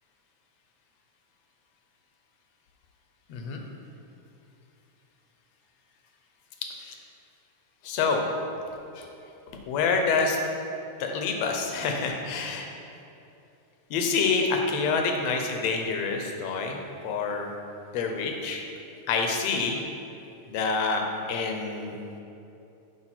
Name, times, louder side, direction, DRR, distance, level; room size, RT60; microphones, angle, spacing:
voice 1, 3.3-3.6 6.8-7.0 7.8-8.3 8.9-9.1 9.7-10.4 11.0-12.7 13.9-16.8 17.0-17.5 17.9-18.6 19.1-19.8 20.5-22.0, left 4 dB, 75° left, 3 dB, 1.7 m, -27 dB
8.6 x 4.7 x 4.4 m, 2.8 s
omnidirectional pair, 3.3 m